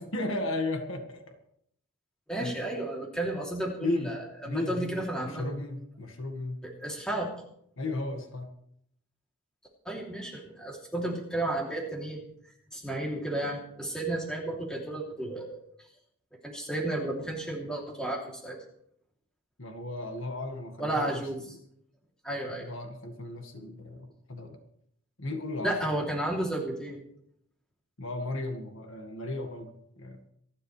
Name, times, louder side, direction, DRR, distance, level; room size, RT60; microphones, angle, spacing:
voice 1, 0.0-1.4 2.4-2.6 3.8-4.2 4.4-6.6 7.8-8.5 19.6-21.2 22.6-24.6 25.2-25.8 28.0-30.2, left 2 dB, 60° left, 4 dB, 1.8 m, -35 dB
voice 2, 2.3-5.5 6.6-7.3 9.8-12.2 12.7-15.6 16.4-18.6 20.8-21.6 22.2-22.7 25.6-27.0, right 1 dB, 5° left, -1 dB, 3.0 m, -32 dB
26.5 x 11.5 x 3.3 m, 0.72 s
head